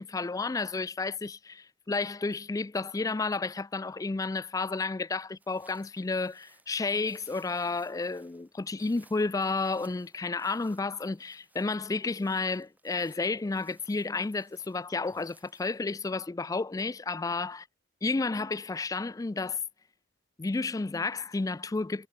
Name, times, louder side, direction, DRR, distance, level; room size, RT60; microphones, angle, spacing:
voice 1, 0.0-17.7 18.0-19.6 20.4-22.1, left 3 dB, 20° left, 0.3 m, -31 dB
sound 1, 5.4-15.8, right 2 dB, 10° right, 4.4 m, -63 dB
head